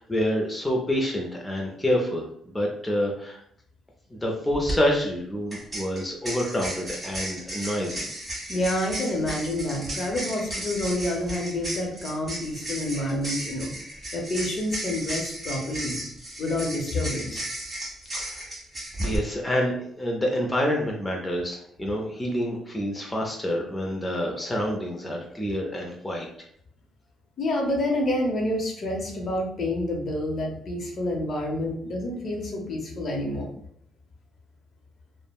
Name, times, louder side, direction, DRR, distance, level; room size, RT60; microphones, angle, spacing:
voice 1, 0.0-2.2 2.5-3.4 4.1-8.1 18.1-18.4 19.0-26.3, equal, 15° left, -1 dB, 0.5 m, -27 dB
sound 1, 4.5-4.7 5.5-19.2, right 1 dB, 15° right, 1.4 m, -34 dB
voice 2, 8.5-13.7 14.1-16.0 16.4-17.4 27.4-33.5, left 1 dB, 50° left, 1 dB, 0.7 m, -28 dB
3.3 x 2.1 x 2.3 m, 0.68 s
cardioid pair, 90°, 0 cm